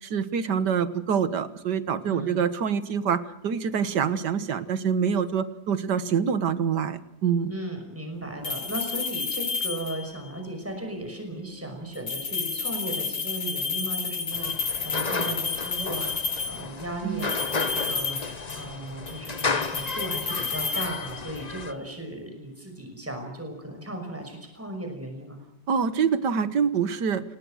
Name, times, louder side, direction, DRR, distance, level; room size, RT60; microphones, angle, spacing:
voice 1, 0.0-7.5 17.0-17.3 25.7-27.2, right 7 dB, 75° right, 13 dB, 1.9 m, -26 dB
voice 2, 2.1-2.4 7.5-25.4, right 1 dB, 5° right, 4 dB, 5.6 m, -36 dB
sound 1, 8.4-10.2 11.9-16.7 17.2-18.8 19.1-21.5, left 4 dB, 45° left, 2.3 m, -31 dB
sound 2, 14.3-21.7, left 4 dB, 30° left, 1.0 m, -33 dB
29.5 x 19.5 x 6.4 m, 0.80 s
omnidirectional pair, 1.8 m